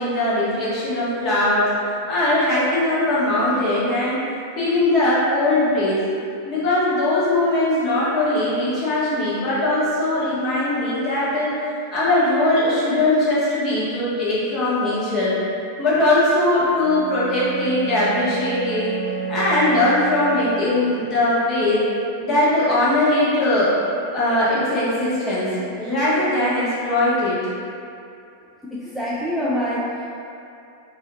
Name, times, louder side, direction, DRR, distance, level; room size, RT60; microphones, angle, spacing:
voice 1, 0.0-1.7 2.1-4.2 4.6-6.0 6.4-11.5 11.9-15.3 15.8-18.9 19.3-21.8 22.2-23.7 24.1-27.4, left 1 dB, 35° left, -9 dB, 1.4 m, -20 dB
Bowed string instrument, 16.7-21.1, right 5 dB, 75° left, 1.1 m, -31 dB
voice 2, 28.7-30.1, equal, 5° left, -9 dB, 0.5 m, -25 dB
4.7 x 2.8 x 2.8 m, 2.6 s
figure-of-eight pair, 90°, 0 cm